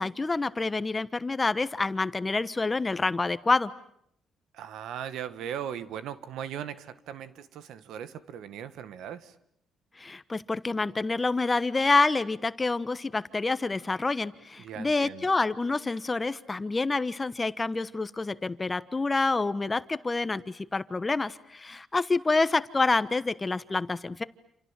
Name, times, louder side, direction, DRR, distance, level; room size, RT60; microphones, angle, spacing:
voice 1, 0.0-3.7 10.0-24.2, left 3 dB, 25° left, 14 dB, 1.2 m, -27 dB
voice 2, 4.5-9.3 14.6-15.3, right 9 dB, 80° right, 12 dB, 1.7 m, -38 dB
28.5 x 28.0 x 7.5 m, 0.74 s
cardioid pair, 90°, 0 cm